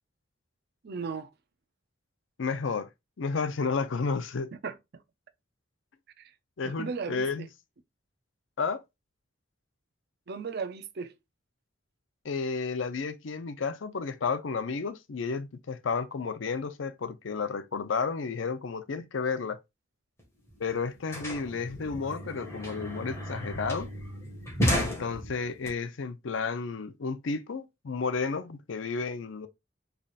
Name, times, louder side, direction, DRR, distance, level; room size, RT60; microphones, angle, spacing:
voice 1, 0.8-1.3 4.6-4.8 6.2-6.3 6.6-7.5 10.3-11.1, right 5 dB, 55° right, 0.5 m, -36 dB
voice 2, 2.4-2.9 3.2-4.5 6.6-7.5 8.6-8.8 12.2-19.6 20.6-23.9 24.7-29.5, left 4 dB, 75° left, 0.5 m, -32 dB
sound 1, 20.2-20.3 20.5-25.7, equal, 15° left, 1.6 m, -33 dB
4.0 x 3.3 x 2.4 m
head